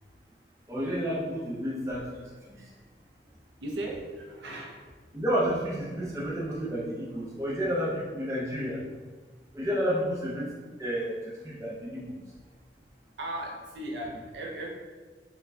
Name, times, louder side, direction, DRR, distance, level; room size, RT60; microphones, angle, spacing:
voice 1, 0.7-2.1 5.1-8.8 9.5-10.4 10.8-11.1 11.4-12.0, equal, 15° right, -6 dB, 0.6 m, -30 dB
voice 2, 3.2-4.9 13.2-14.7, right 1 dB, 75° right, 0 dB, 0.5 m, -38 dB
4.1 x 2.2 x 2.6 m, 1.4 s
head